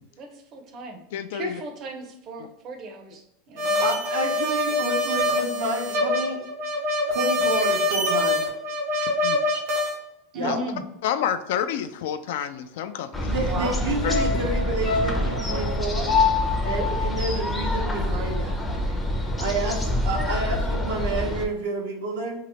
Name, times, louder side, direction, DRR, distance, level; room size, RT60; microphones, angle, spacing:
voice 1, 0.2-3.9 10.3-10.8 13.5-13.8 16.6-17.1, right 2 dB, 40° right, 4 dB, 0.6 m, -36 dB
voice 2, 1.1-1.5 3.6-3.7 9.2-9.4 10.4-10.6 11.0-13.3 14.0-14.2, left 9 dB, 75° left, 10 dB, 0.3 m, -29 dB
sound 1, 3.6-9.9, left 1 dB, 75° right, 1.2 m, -24 dB
voice 3, 3.8-6.4 7.1-8.5 10.3-10.6 13.2-16.1 16.6-18.6 19.4-22.3, right 2 dB, 90° right, 0 dB, 0.9 m, -29 dB
sound 2, 13.1-21.5, left 1 dB, 5° left, 0.5 m, -27 dB
sound 3, 14.1-18.5 18.8-18.9, left 5 dB, 55° left, 0.7 m, -27 dB
2.8 x 2.1 x 4.0 m, 0.87 s
supercardioid pair, 125°, 0 cm